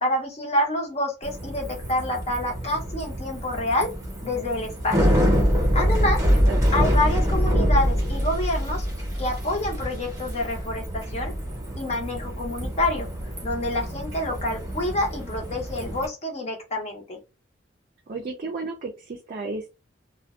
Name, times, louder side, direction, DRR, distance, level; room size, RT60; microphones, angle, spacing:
voice 1, 0.0-3.9 4.2-5.2 5.7-6.2 6.7-8.9 9.2-11.3 11.7-13.1 13.4-17.2, left 1 dB, 35° left, 1 dB, 0.7 m, -27 dB
Bicycle, 1.2-16.1, equal, 20° right, 0.8 m, -25 dB
voice 2, 6.0-6.6 18.1-19.7, right 3 dB, 45° right, 2 dB, 0.4 m, -33 dB
2.5 x 2.1 x 2.3 m, 0.29 s
head